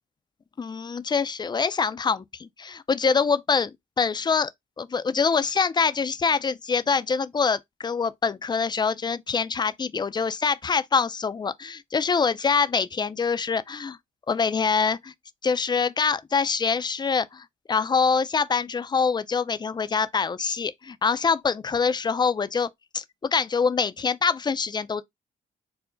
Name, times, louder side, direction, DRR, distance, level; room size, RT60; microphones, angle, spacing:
voice 1, 0.6-4.5 4.8-14.0 14.3-15.1 15.4-22.7 22.9-25.0, left 5 dB, 20° left, 0.4 m, -25 dB
4.5 x 2.1 x 3.7 m
cardioid pair, 90°, 20 cm